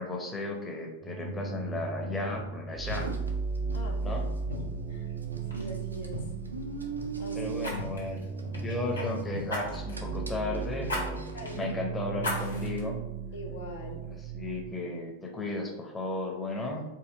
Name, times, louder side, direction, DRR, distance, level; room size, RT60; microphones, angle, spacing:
voice 1, 0.0-3.1 4.0-4.2 7.3-8.3 8.6-11.2 11.5-13.0 14.2-16.9, left 2 dB, 15° left, 0 dB, 0.8 m, -34 dB
sound 1, 1.0-14.7, right 5 dB, 25° right, 0.4 m, -36 dB
Car, 2.8-11.7, right 2 dB, 80° right, 0.5 m, -41 dB
voice 2, 3.7-4.2 4.5-4.6 4.9-5.1 5.5-6.3 7.2-7.6 11.3-11.7 13.3-14.0, left 1 dB, 60° left, 1 dB, 0.7 m, -42 dB
Fire, 4.9-5.1 5.5-5.7 7.6-9.1 9.5-10.0 10.9-11.0 11.4-11.5 12.2-12.8 13.3-13.4, left 1 dB, 75° left, 1.2 m, -35 dB
4.6 x 2.7 x 3.5 m, 0.98 s
figure-of-eight pair, 90°, 0 cm